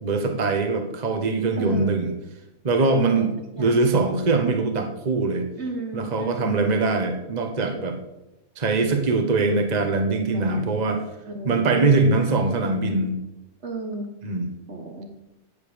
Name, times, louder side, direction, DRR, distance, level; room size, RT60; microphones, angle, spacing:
voice 1, 0.0-2.1 2.6-3.3 3.6-5.4 5.9-8.0 8.6-11.0 11.4-13.2 14.2-14.5, right 3 dB, 30° right, 5 dB, 1.3 m, -22 dB
voice 2, 1.6-1.9 3.0-3.3 3.6-3.8 5.6-6.7 10.3-10.8 11.3-12.4 13.6-14.1 14.7-15.1, right 2 dB, 50° right, 4 dB, 1.4 m, -34 dB
9.2 x 8.7 x 6.8 m, 0.92 s
omnidirectional pair, 1.6 m